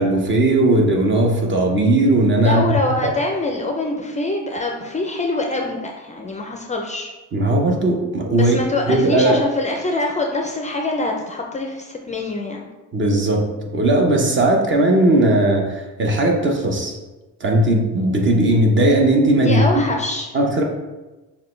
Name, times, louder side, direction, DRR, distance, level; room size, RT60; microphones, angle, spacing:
voice 1, 0.0-2.6 7.3-8.6 8.9-9.4 12.9-17.0 17.4-19.8 20.3-20.6, right 1 dB, 35° right, 1 dB, 0.9 m, -17 dB
voice 2, 2.4-7.1 8.3-12.7 19.4-20.3, left 2 dB, 20° left, 1 dB, 0.4 m, -24 dB
6.5 x 2.3 x 3.2 m, 1.1 s
cardioid pair, 105°, 33 cm